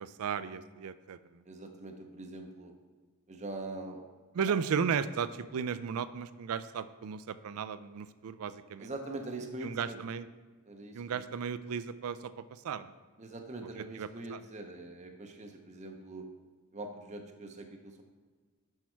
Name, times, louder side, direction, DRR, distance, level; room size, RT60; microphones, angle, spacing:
voice 1, 0.0-1.4 4.3-8.9 9.6-10.3 10.9-12.9 13.8-14.4, right 6 dB, 75° right, 14 dB, 0.4 m, -35 dB
voice 2, 1.5-2.7 3.3-4.0 8.8-10.0 10.7-11.2 13.2-16.3 16.7-18.0, right 2 dB, 30° right, 4 dB, 0.6 m, -43 dB
6.3 x 5.9 x 4.4 m, 1.4 s
head